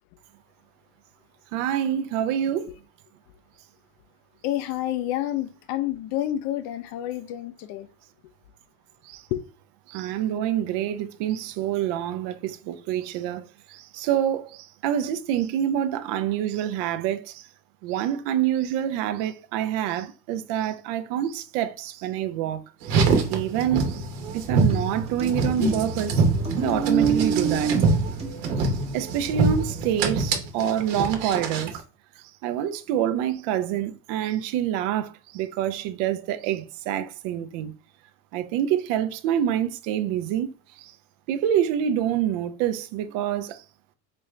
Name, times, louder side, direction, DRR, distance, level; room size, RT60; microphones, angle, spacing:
voice 1, 1.5-2.7 9.1-9.2 9.9-17.4 17.8-23.0 23.3-24.1 24.3-26.2 26.6-27.7 28.6-31.8 32.4-37.7 38.3-40.5 40.8-40.9 41.3-43.6, right 10 dB, 60° right, 0.6 m, -27 dB
voice 2, 4.4-7.9 9.3-9.4, left 13 dB, 50° left, 0.5 m, -29 dB
Car, 22.8-31.8, right 4 dB, 80° right, 1.1 m, -24 dB
sound 1, 24.7-29.0, right 3 dB, 15° right, 0.7 m, -39 dB
4.3 x 2.4 x 3.1 m
supercardioid pair, 120°, 48 cm